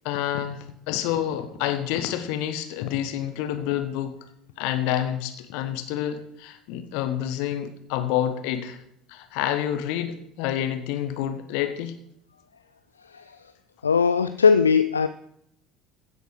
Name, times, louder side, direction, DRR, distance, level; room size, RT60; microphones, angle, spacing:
voice 1, 0.0-0.6 0.9-4.1 4.6-8.8 9.1-12.0, left 11 dB, 60° left, 9 dB, 1.3 m, -28 dB
voice 2, 13.8-15.1, left 5 dB, 80° left, 11 dB, 0.4 m, -19 dB
15.5 x 8.0 x 4.9 m, 0.72 s
figure-of-eight pair, 60°, 0 cm